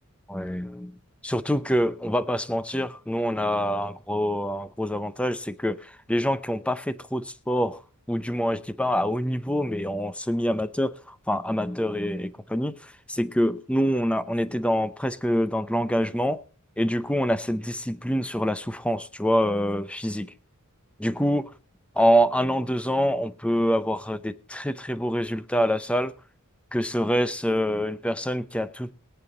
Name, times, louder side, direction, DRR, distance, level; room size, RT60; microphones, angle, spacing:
voice 1, 0.3-0.9 1.2-5.8 6.1-7.8 8.1-12.8 13.1-16.4 16.8-20.3 21.0-21.5 22.0-26.1 26.7-28.9, equal, 5° left, 13 dB, 0.7 m, -25 dB
22.0 x 7.9 x 3.9 m, 0.35 s
head